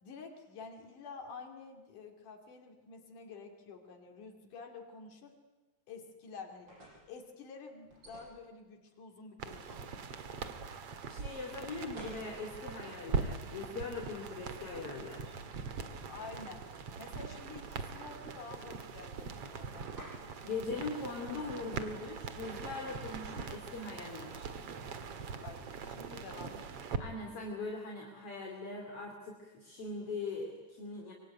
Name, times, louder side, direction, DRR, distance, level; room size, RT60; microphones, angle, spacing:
voice 1, 0.0-5.4 5.9-6.7 7.1-9.8 16.1-16.6 17.0-19.9 25.4-26.7, left 4 dB, 85° left, 3 dB, 4.2 m, -49 dB
sound 1, 6.5-7.1 7.9-8.3 9.7-10.4 11.6-12.3 17.9-18.5 18.8-19.4 19.9-20.2 21.7-21.9 22.4-22.9, right 1 dB, 35° right, 8.9 m, -52 dB
sound 2, 9.4-27.0, right 5 dB, 55° right, 2.5 m, -42 dB
voice 2, 11.1-15.4 20.4-24.5 27.0-31.1, left 3 dB, 50° left, 1 dB, 3.8 m, -41 dB
25.0 x 24.0 x 9.4 m, 1.2 s
omnidirectional pair, 3.5 m